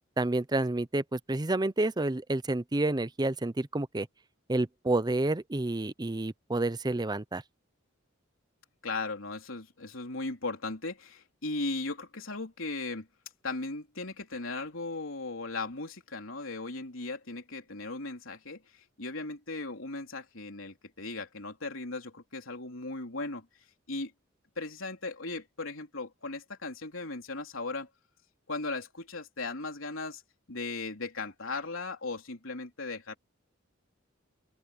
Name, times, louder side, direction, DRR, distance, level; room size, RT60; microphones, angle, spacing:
voice 1, 0.2-4.1 4.5-7.4, right 2 dB, 20° right, 0.7 m, -29 dB
voice 2, 8.8-13.1 13.4-23.5 23.9-24.1 24.6-27.9 28.5-30.2 30.5-33.2, left 3 dB, 80° left, 3.6 m, -37 dB
head